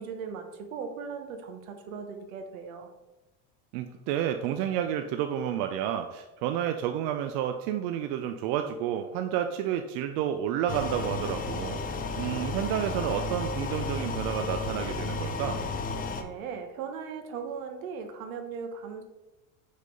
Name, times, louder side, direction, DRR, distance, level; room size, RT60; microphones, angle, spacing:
voice 1, 0.0-2.9 16.2-19.0, right 6 dB, 80° right, 6 dB, 1.2 m, -38 dB
voice 2, 3.7-11.8 12.2-15.6, right 10 dB, 60° right, 7 dB, 0.6 m, -30 dB
sound 1, 10.7-16.2, left 3 dB, 20° left, 0.6 m, -33 dB
5.2 x 4.1 x 5.3 m, 1.0 s
supercardioid pair, 120°, 41 cm